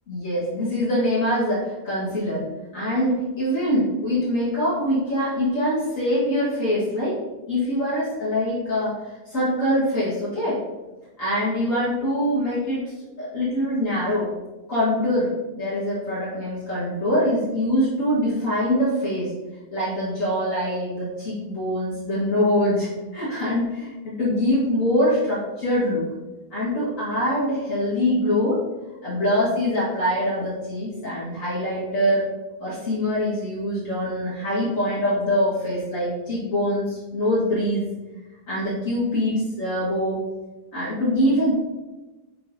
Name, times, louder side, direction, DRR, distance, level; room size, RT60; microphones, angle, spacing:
voice 1, 0.1-2.4 2.7-7.2 7.5-8.9 9.3-10.6 11.2-12.8 13.2-14.3 14.7-19.3 19.7-26.0 26.5-28.6 29.0-32.3 32.6-37.9 38.5-40.2 40.7-41.5, equal, 55° left, -10 dB, 2.1 m, -24 dB
6.2 x 5.7 x 2.7 m, 1.1 s
omnidirectional pair, 1.7 m